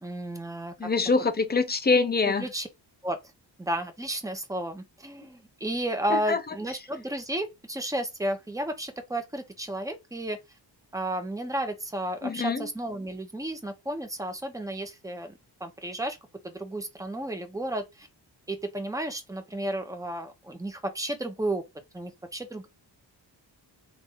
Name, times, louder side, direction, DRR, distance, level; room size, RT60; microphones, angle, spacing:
voice 1, 0.0-0.9 2.4-2.7 3.0-3.2 3.6-10.4 10.9-15.3 15.6-16.2 16.4-18.1 18.5-21.6 21.9-22.7, right 1 dB, 5° right, 1.0 m, -32 dB
voice 2, 0.8-2.4 6.1-6.4 12.2-12.6, left 4 dB, 20° left, 0.8 m, -24 dB
3.8 x 2.6 x 3.8 m
cardioid pair, 95°, 45 cm